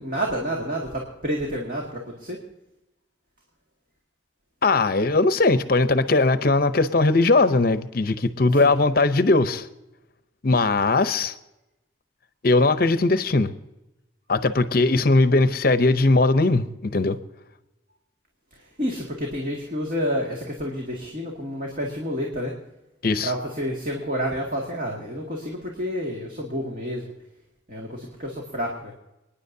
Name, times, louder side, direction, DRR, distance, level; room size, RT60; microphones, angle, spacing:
voice 1, 0.0-2.4 8.6-8.7 18.8-22.5 23.2-27.1 27.7-28.9, equal, 45° right, 2.1 m, -29 dB
voice 2, 4.6-9.7 10.4-11.3 12.4-13.5 14.3-17.2 23.0-23.3, left 3 dB, 50° left, 0.7 m, -19 dB
29.5 x 10.0 x 2.7 m
head